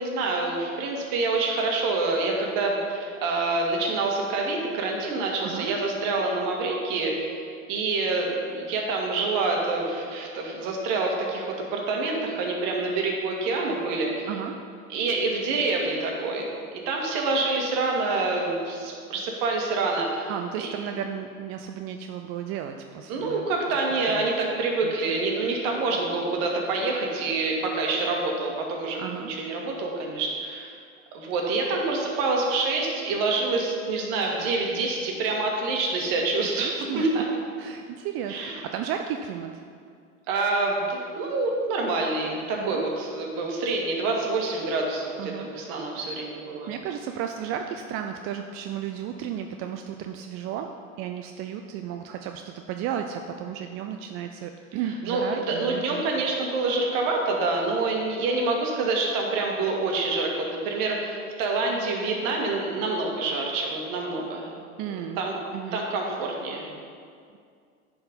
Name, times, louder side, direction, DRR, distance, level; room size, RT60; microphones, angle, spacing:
voice 1, 0.0-7.4 7.7-14.3 14.9-16.5 16.7-20.7 23.1-30.7 31.1-37.2 38.3-38.6 40.3-46.7 55.1-64.6 64.9-65.4 65.7-66.7, right 3 dB, 50° right, 0 dB, 2.0 m, -27 dB
voice 2, 14.3-14.6 20.3-23.8 24.1-24.3 24.8-24.9 29.0-29.3 36.4-37.1 37.6-39.6 42.5-42.8 45.2-45.8 46.7-56.1 64.8-65.2 65.5-65.8, right 9 dB, 35° right, 5 dB, 0.4 m, -34 dB
10.5 x 4.5 x 5.4 m, 2.2 s
hypercardioid pair, 90°, 41 cm